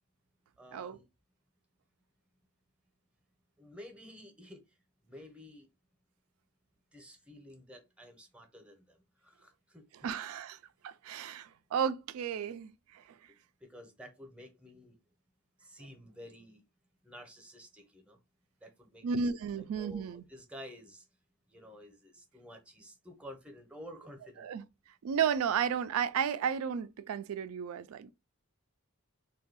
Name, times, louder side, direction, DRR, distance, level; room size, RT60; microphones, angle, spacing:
voice 1, 0.6-1.1 3.6-4.6 5.0-5.7 6.9-9.0 9.2-9.8 13.6-15.0 15.6-16.6 17.0-18.2 18.6-19.1 19.6-21.0 21.5-24.5, equal, 5° right, 0.7 m, -51 dB
voice 2, 10.0-10.6 10.8-13.2 19.0-20.2 24.4-24.7 25.0-28.1, right 7 dB, 75° right, 0.3 m, -33 dB
2.6 x 2.3 x 4.0 m
head